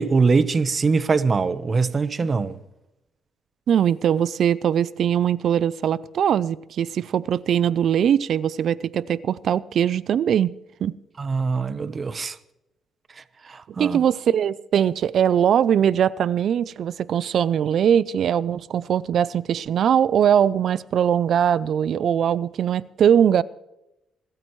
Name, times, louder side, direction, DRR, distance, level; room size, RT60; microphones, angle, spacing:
voice 1, 0.0-2.6 11.2-12.4 13.2-14.0, right 4 dB, 35° right, 1.0 m, -23 dB
voice 2, 3.7-10.5 10.8-10.9 13.8-23.4, right 9 dB, 65° right, 0.4 m, -21 dB
24.5 x 13.5 x 3.2 m
cardioid pair, 90°, 0 cm